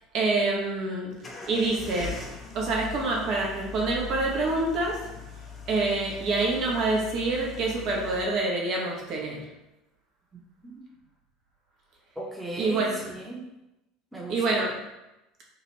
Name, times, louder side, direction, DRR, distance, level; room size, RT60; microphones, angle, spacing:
voice 1, 0.1-1.2 1.5-2.3 2.5-5.1 5.7-9.5 12.6-13.1 14.3-14.8, right 3 dB, 50° right, -1 dB, 0.8 m, -26 dB
sound 1, 1.2-8.2, left 5 dB, 25° left, 0.5 m, -41 dB
voice 2, 10.3-10.8 12.2-13.4 14.1-14.6, right 1 dB, 10° right, -2 dB, 0.8 m, -37 dB
2.9 x 2.5 x 3.0 m, 0.95 s
figure-of-eight pair, 70°, 0 cm